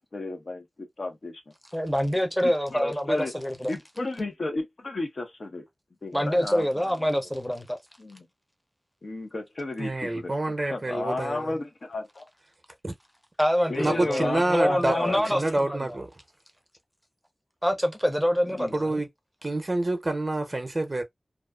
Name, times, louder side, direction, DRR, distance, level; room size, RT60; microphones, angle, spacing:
voice 1, 0.1-1.4 2.4-3.3 3.7-5.6 6.0-7.1 8.0-8.3 9.0-10.3 10.7-12.3 13.7-15.2 18.6-18.7, left 2 dB, 65° left, 0.8 m, -33 dB
voice 2, 1.7-3.7 6.1-7.8 13.4-15.9 17.6-19.0, equal, 5° left, 0.7 m, -26 dB
voice 3, 9.8-11.6 12.8-12.9 13.8-16.1 18.7-19.1 19.4-21.0, right 2 dB, 40° right, 0.6 m, -27 dB
2.4 x 2.3 x 2.2 m
wide cardioid pair, 70°, 0 cm